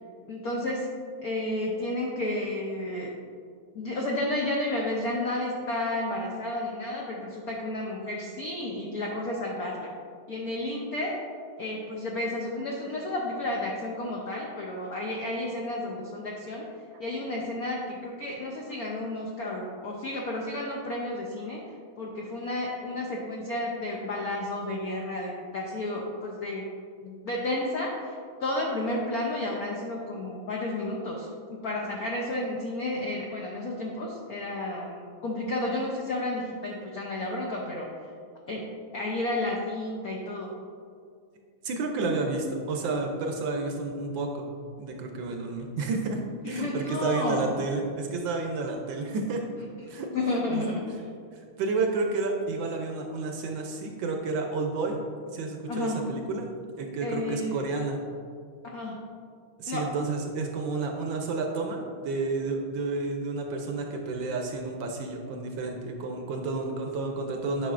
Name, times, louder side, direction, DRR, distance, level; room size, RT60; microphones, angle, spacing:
voice 1, 0.3-0.9 1.2-3.1 3.7-9.9 10.3-11.2 11.6-16.7 17.0-21.6 22.0-26.7 27.0-37.9 38.5-38.6 38.9-40.5 46.4-47.5 50.1-50.8 55.7-56.0 57.0-57.6 58.7-59.0 59.7-59.9, left 1 dB, 75° left, -2 dB, 0.8 m, -32 dB
voice 2, 41.6-44.5 44.8-46.2 46.4-49.4 49.9-50.1 50.5-50.6 51.6-55.0 55.3-56.5 56.8-58.0 59.6-67.7, right 3 dB, 70° right, 2 dB, 1.2 m, -30 dB
9.1 x 5.7 x 2.5 m, 2.2 s
omnidirectional pair, 2.4 m